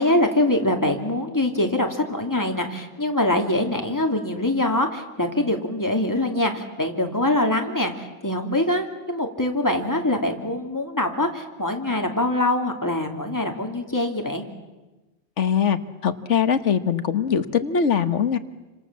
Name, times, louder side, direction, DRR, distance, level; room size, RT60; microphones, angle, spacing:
voice 1, 0.0-14.4, left 1 dB, 15° left, 3 dB, 2.9 m, -24 dB
voice 2, 15.4-18.4, left 7 dB, 75° left, 11 dB, 1.6 m, -22 dB
29.5 x 26.0 x 7.5 m, 1.1 s
omnidirectional pair, 1.2 m